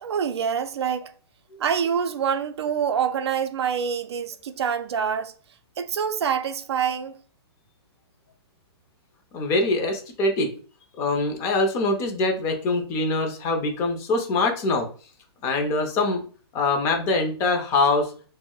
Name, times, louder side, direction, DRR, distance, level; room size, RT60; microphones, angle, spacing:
voice 1, 0.0-1.1 1.6-5.3 5.8-7.2, right 7 dB, 75° right, 0.4 m, -26 dB
voice 2, 9.3-10.5 11.0-14.9 15.4-16.2 16.5-18.1, left 2 dB, 20° left, 0.5 m, -23 dB
2.2 x 2.0 x 3.6 m
hypercardioid pair, 155°, 14 cm